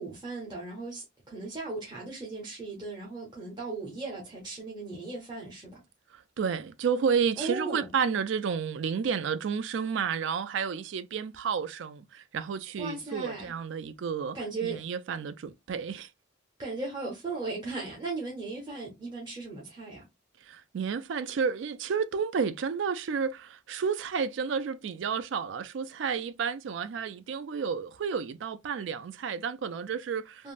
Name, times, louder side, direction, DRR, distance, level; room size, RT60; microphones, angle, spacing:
voice 1, 0.0-5.8 7.4-7.9 12.8-13.5 14.3-14.8 16.6-20.1 30.4-30.5, right 3 dB, 25° right, 0.7 m, -37 dB
voice 2, 6.1-16.1 20.5-30.5, right 6 dB, 70° right, 0.3 m, -31 dB
3.5 x 2.0 x 2.4 m
head